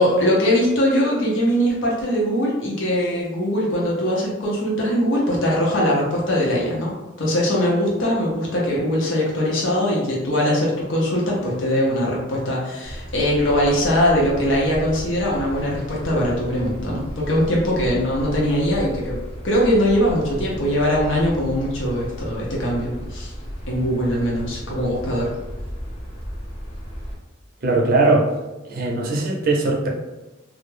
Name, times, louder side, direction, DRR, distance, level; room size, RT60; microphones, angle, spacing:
voice 1, 0.0-6.9 7.2-19.2 19.4-23.3 23.7-25.3, equal, 75° left, -4 dB, 0.6 m, -21 dB
sound 1, 12.8-27.2, equal, 30° left, 0.5 m, -34 dB
voice 2, 27.6-28.3 28.7-29.9, right 3 dB, 50° right, -1 dB, 0.5 m, -19 dB
2.2 x 2.0 x 3.1 m, 1.1 s
head